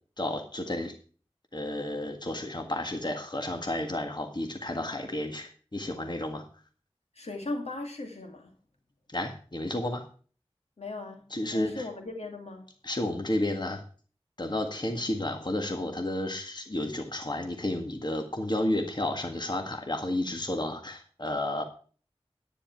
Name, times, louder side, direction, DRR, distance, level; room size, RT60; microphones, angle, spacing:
voice 1, 0.2-0.9 1.5-6.4 9.1-10.0 11.3-11.9 12.8-13.8 14.4-21.6, left 1 dB, 45° left, 5 dB, 1.7 m, -31 dB
voice 2, 7.1-8.6 10.8-12.7 14.9-15.1, left 2 dB, 85° left, 4 dB, 2.4 m, -38 dB
10.0 x 9.8 x 4.6 m, 0.40 s
wide cardioid pair, 40°, 11 cm